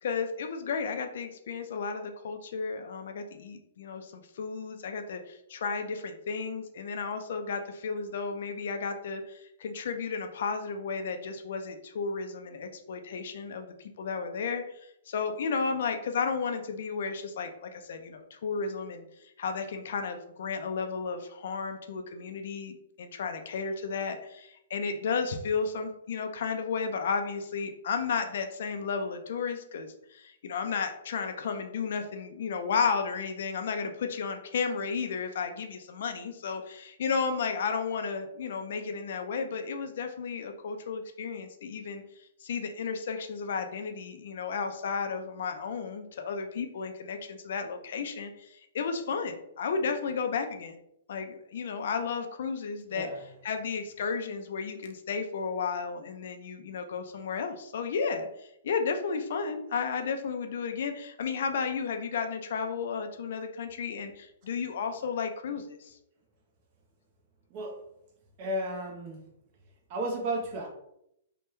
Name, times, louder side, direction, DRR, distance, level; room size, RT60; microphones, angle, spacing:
voice 1, 0.0-14.8 15.1-42.0 42.4-50.8 51.1-53.1 53.4-66.0, left 5 dB, 65° left, 6 dB, 0.4 m, -33 dB
voice 2, 52.9-53.3 67.5-67.8 68.4-69.2 69.9-70.7, right 1 dB, 35° right, 1 dB, 0.8 m, -33 dB
3.2 x 2.1 x 3.1 m, 0.78 s
hypercardioid pair, 155°, 0 cm